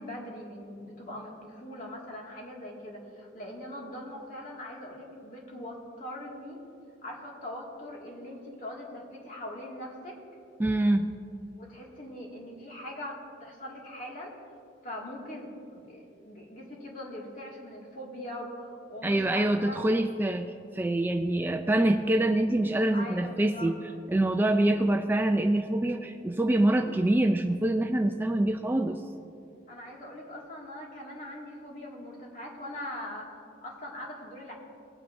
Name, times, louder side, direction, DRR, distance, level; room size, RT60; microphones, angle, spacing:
voice 1, 0.0-6.6 7.0-10.2 11.6-14.3 14.8-19.8 22.9-23.7 29.7-34.5, left 1 dB, 45° left, -2 dB, 2.1 m, -41 dB
voice 2, 10.6-11.1 19.0-23.8 24.1-29.0, right 1 dB, 10° right, 5 dB, 0.3 m, -25 dB
20.0 x 8.9 x 2.6 m, 2.6 s
head